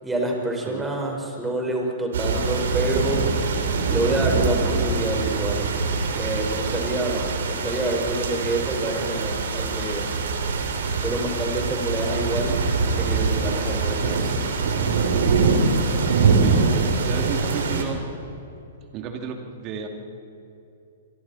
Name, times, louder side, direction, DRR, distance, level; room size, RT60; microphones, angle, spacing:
voice 1, 0.0-3.3 3.9-5.7 6.1-10.1 11.0-12.6 12.9-14.4, right 1 dB, 10° right, 0 dB, 5.0 m, -27 dB
sound 1, 2.1-17.8, right 4 dB, 70° right, 3.2 m, -24 dB
voice 2, 16.3-18.0 18.9-19.9, right 5 dB, 35° right, 3 dB, 2.7 m, -33 dB
28.0 x 24.5 x 4.3 m, 2.7 s
hypercardioid pair, 115°, 0 cm